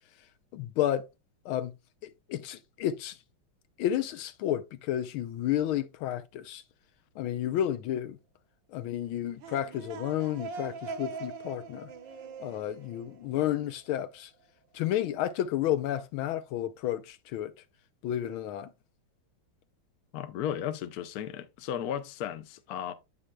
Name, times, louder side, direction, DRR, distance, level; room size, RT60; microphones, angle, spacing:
voice 1, 0.5-1.1 1.4-1.7 2.0-3.2 3.8-6.6 7.2-8.2 8.7-11.9 12.4-14.3 14.7-17.5 18.0-18.7, left 12 dB, 80° left, 1.4 m, -31 dB
sound 1, 9.2-13.9, right 4 dB, 65° right, 1.5 m, -42 dB
voice 2, 20.1-22.9, left 9 dB, 65° left, 1.0 m, -35 dB
8.6 x 6.5 x 2.2 m
omnidirectional pair, 2.4 m